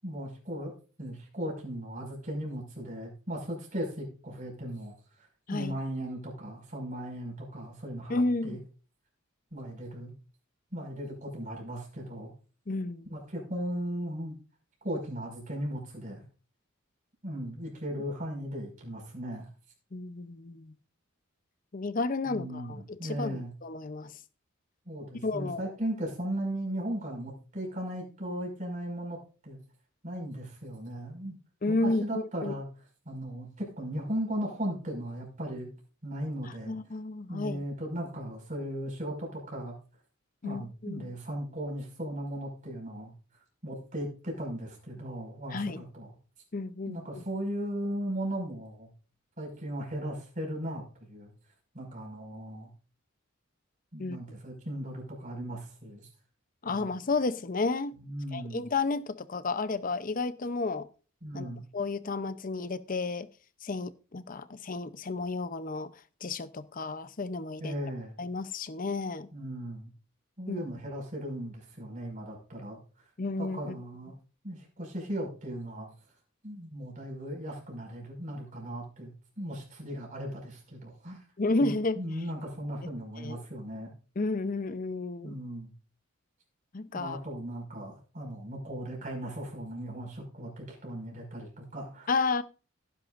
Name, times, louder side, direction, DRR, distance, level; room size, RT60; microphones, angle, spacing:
voice 1, 0.0-4.9 5.5-8.6 9.5-10.1 10.7-12.3 13.1-14.3 14.8-16.2 17.2-19.5 22.3-23.5 24.9-29.2 29.4-29.6 30.0-31.4 31.7-32.7 33.1-35.7 36.0-36.7 37.3-39.8 40.4-43.1 43.6-46.1 46.9-48.9 49.4-51.3 51.7-52.7 53.9-56.1 56.7-56.9 57.9-58.6 61.2-61.6 67.6-68.1 69.3-69.9 70.4-72.8 73.4-74.1 74.4-75.9 76.4-79.1 79.4-81.2 81.6-83.9 85.2-85.7 86.9-92.1, equal, 40° right, 5.5 m, -37 dB
voice 2, 8.1-8.6 12.7-13.0 19.9-20.7 21.7-24.1 25.2-25.6 31.6-32.5 36.7-37.6 40.4-41.1 45.5-45.8 46.5-47.2 54.0-54.2 56.6-58.0 58.3-60.9 61.3-63.3 63.6-65.9 66.2-67.7 68.2-69.3 70.5-70.6 73.2-73.8 81.4-82.0 83.2-83.4 84.2-85.4 86.7-87.2 92.1-92.4, left 3 dB, 40° left, 0.6 m, -32 dB
17.5 x 10.5 x 2.5 m
head